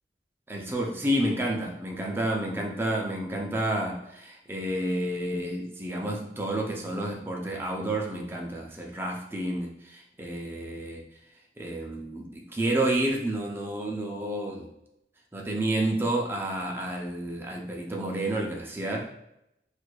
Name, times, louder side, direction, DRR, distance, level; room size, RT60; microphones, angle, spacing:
voice 1, 0.5-11.0 11.6-14.7 15.3-19.1, right 1 dB, 15° right, 0 dB, 0.4 m, -30 dB
4.5 x 2.5 x 2.2 m, 0.82 s
head